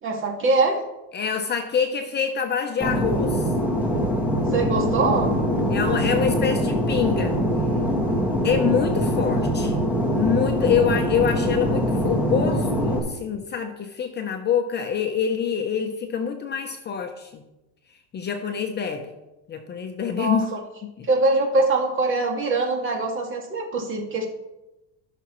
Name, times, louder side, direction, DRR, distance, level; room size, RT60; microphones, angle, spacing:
voice 1, 0.0-0.8 4.5-5.3 20.2-20.6 21.1-24.3, right 3 dB, 35° right, 1 dB, 2.2 m, -23 dB
voice 2, 1.1-3.5 5.7-7.4 8.4-9.8 10.1-17.4 18.1-19.1 19.5-20.5 20.8-21.1, left 7 dB, 30° left, 5 dB, 0.8 m, -25 dB
Fixed-wing aircraft airplane, 2.8-13.0, equal, 5° right, 1.9 m, -23 dB
16.5 x 6.0 x 3.1 m, 0.98 s
supercardioid pair, 125°, 36 cm